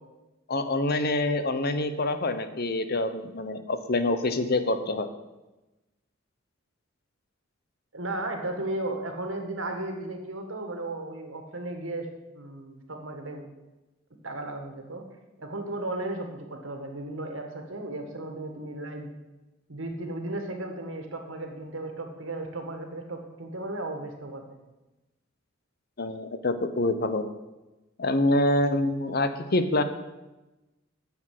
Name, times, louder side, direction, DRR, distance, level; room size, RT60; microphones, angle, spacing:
voice 1, 0.5-5.1 26.0-27.2 28.0-29.8, left 2 dB, 50° left, 10 dB, 0.9 m, -26 dB
voice 2, 7.9-12.1 12.3-13.4 14.2-15.0 15.4-19.1 19.7-24.4, right 2 dB, 75° right, 4 dB, 1.9 m, -35 dB
10.0 x 7.1 x 7.7 m, 1.1 s
head